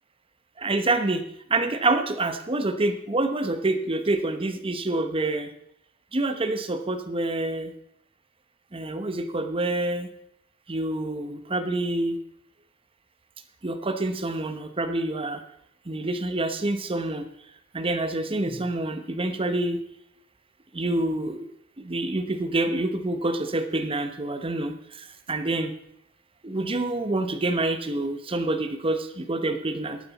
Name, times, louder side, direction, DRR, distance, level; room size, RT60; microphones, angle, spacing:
voice 1, 0.6-5.5 6.1-7.7 8.7-10.1 10.7-12.2 13.6-15.4 15.9-17.3 17.7-19.8 20.7-21.5 21.8-25.7 26.4-30.0, right 2 dB, 25° right, 8 dB, 0.9 m, -27 dB
11.0 x 9.4 x 4.1 m, 0.74 s
head